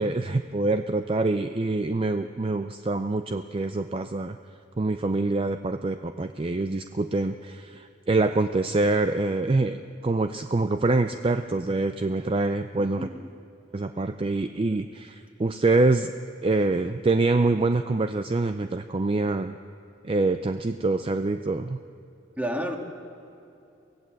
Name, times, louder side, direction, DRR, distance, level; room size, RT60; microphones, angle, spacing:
voice 1, 0.0-4.4 4.8-9.8 10.0-13.1 13.7-16.1 16.4-19.6 20.0-21.8, right 2 dB, 30° right, 9 dB, 0.4 m, -25 dB
voice 2, 12.8-13.3 22.4-22.8, equal, 10° right, 2 dB, 1.7 m, -31 dB
23.5 x 16.5 x 7.6 m, 2.7 s
head